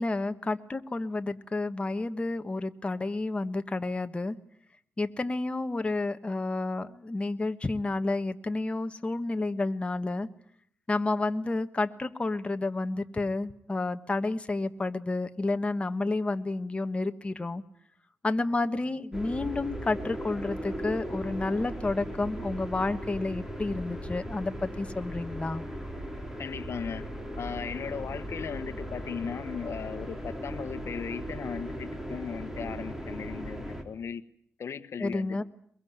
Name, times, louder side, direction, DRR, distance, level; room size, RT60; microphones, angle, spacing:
voice 1, 0.0-4.4 5.0-10.3 10.9-17.6 18.2-25.6 35.0-35.4, left 2 dB, 25° left, 8 dB, 1.3 m, -30 dB
sound 1, 19.1-33.8, equal, 10° right, 4.0 m, -38 dB
voice 2, 26.4-27.1 27.4-34.2 34.6-35.4, left 7 dB, 65° left, 12 dB, 1.1 m, -37 dB
22.5 x 22.5 x 9.5 m, 0.64 s
wide cardioid pair, 105°, 5 cm